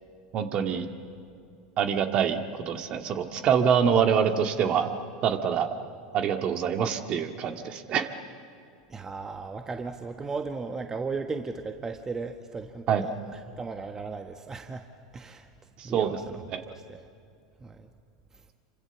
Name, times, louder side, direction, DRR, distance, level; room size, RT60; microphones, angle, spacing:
voice 1, 0.3-0.9 1.8-4.9 5.2-5.7 6.1-8.1 12.9-13.0 15.8-16.2 16.5-16.6, right 7 dB, 45° right, 6 dB, 2.0 m, -25 dB
voice 2, 8.9-14.9 15.1-15.5 15.8-17.0 17.6-17.9, right 4 dB, 20° right, 6 dB, 1.3 m, -36 dB
27.5 x 25.0 x 7.1 m, 2.4 s
hypercardioid pair, 95°, 2 cm